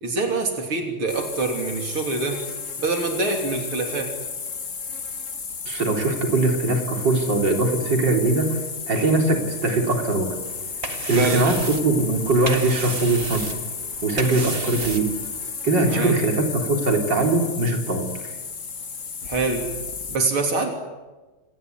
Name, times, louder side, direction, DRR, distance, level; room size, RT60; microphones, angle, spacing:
voice 1, 0.0-2.4 2.8-4.1 11.1-11.5 15.9-16.2 19.3-19.7 20.1-20.7, right 3 dB, 80° right, 4 dB, 4.1 m, -25 dB
sound 1, 1.1-20.2, left 5 dB, 40° left, 1.8 m, -33 dB
voice 2, 5.7-8.6 8.9-10.3 11.0-13.5 14.0-15.1 15.6-18.3, right 2 dB, 55° right, 3 dB, 4.3 m, -21 dB
sound 2, 10.4-15.6, right 3 dB, 30° right, 1.9 m, -33 dB
27.5 x 19.5 x 9.5 m, 1.2 s
omnidirectional pair, 2.3 m